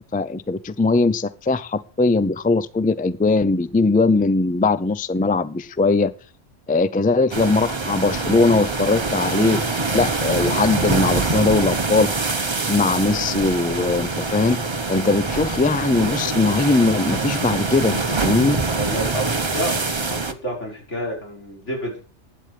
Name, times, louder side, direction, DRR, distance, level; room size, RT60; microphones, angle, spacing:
voice 1, 0.0-6.1 6.7-9.6 9.9-12.1 12.7-14.6 14.9-18.6, left 3 dB, 15° left, 16 dB, 0.3 m, -20 dB
sound 1, 7.3-20.3, right 3 dB, 25° right, 0.9 m, -24 dB
voice 2, 18.7-22.0, right 1 dB, 90° left, -1 dB, 6.0 m, -29 dB
15.0 x 9.9 x 4.9 m, 0.38 s
omnidirectional pair, 1.2 m